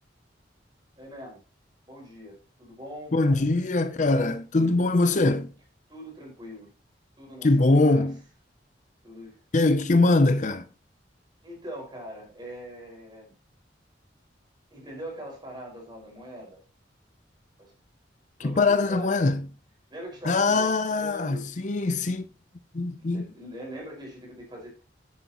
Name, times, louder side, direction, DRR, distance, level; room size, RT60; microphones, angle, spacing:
voice 1, 1.0-1.4 1.9-3.6 5.9-6.7 7.2-7.5 7.8-8.1 9.0-9.4 11.4-13.3 14.7-16.6 17.6-17.7 18.4-19.1 19.9-21.5 23.0-24.8, equal, 25° right, 5.1 m, -42 dB
voice 2, 3.1-5.5 7.4-8.2 9.5-10.7 18.4-19.5 20.2-22.3 22.7-23.2, left 2 dB, 40° left, 0.6 m, -22 dB
9.6 x 9.3 x 2.9 m
head